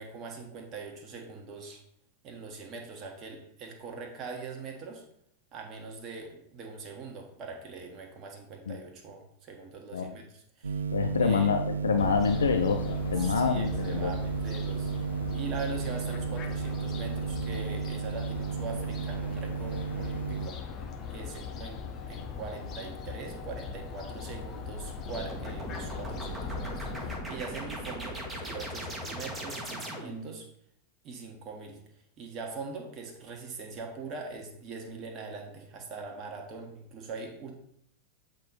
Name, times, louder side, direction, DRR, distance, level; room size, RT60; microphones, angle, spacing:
voice 1, 0.0-1.8 2.2-5.0 5.5-10.8 11.2-11.5 13.2-20.8 21.1-30.5 31.0-31.8 32.2-37.5, right 4 dB, 30° right, 1 dB, 1.4 m, -42 dB
sound 1, 10.6-20.5, right 6 dB, 70° right, 0.4 m, -33 dB
voice 2, 10.9-14.1, left 6 dB, 70° left, 7 dB, 0.4 m, -27 dB
Fowl, 12.0-27.2, left 5 dB, 30° left, 0.9 m, -40 dB
sound 2, 25.1-30.3, equal, 10° right, 1.4 m, -39 dB
8.0 x 4.2 x 4.0 m, 0.71 s
figure-of-eight pair, 90°, 0 cm